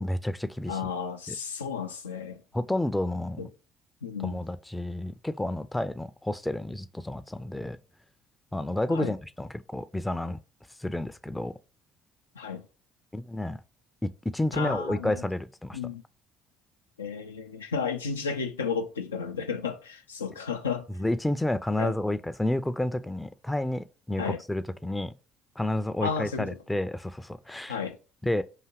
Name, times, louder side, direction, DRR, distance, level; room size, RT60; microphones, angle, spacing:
voice 1, 0.0-0.8 2.5-3.4 4.2-7.8 8.5-10.4 10.8-11.5 13.1-13.6 14.0-15.8 21.0-25.1 25.6-27.8 28.2-28.4, left 1 dB, 10° left, 0.4 m, -30 dB
voice 2, 0.7-2.4 3.4-3.5 4.0-4.4 8.9-9.1 12.3-12.7 14.5-15.3 15.7-16.0 17.0-20.9 21.8-22.0 24.2-24.4 26.0-26.6 27.7-28.0, left 6 dB, 90° left, 0.3 m, -33 dB
4.8 x 2.7 x 2.9 m
hypercardioid pair, 55°, 0 cm